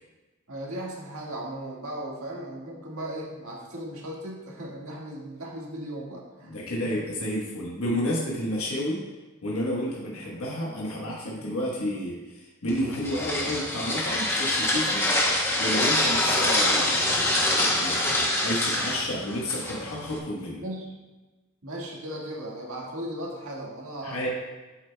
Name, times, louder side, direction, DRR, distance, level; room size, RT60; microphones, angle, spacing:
voice 1, 0.5-6.6 20.6-21.0 21.6-24.3, right 1 dB, 75° right, -3 dB, 1.7 m, -37 dB
voice 2, 6.4-9.0 9.4-15.0 15.6-20.6 24.0-24.3, equal, 85° left, -4 dB, 1.2 m, -31 dB
sound 1, 12.7-20.2, left 1 dB, 10° left, 0.8 m, -25 dB
8.8 x 7.1 x 2.2 m, 1.2 s
head